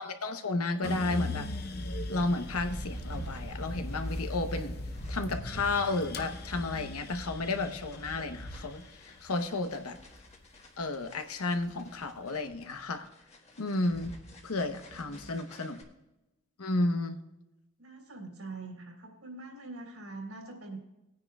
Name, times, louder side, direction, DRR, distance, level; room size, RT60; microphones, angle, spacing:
voice 1, 0.0-1.5 2.1-4.8 5.1-8.8 9.2-10.0 10.8-13.1 13.6-14.1 14.4-15.8 16.6-17.2, left 2 dB, 90° left, 7 dB, 0.9 m, -32 dB
sound 1, 0.8-11.0 11.5-12.3, left 2 dB, 45° left, 0.7 m, -40 dB
sound 2, 2.4-15.8, equal, 30° left, 1.4 m, -45 dB
voice 2, 14.9-15.5 17.8-20.8, right 3 dB, 80° right, 1 dB, 3.2 m, -44 dB
19.5 x 9.4 x 2.4 m, 0.97 s
head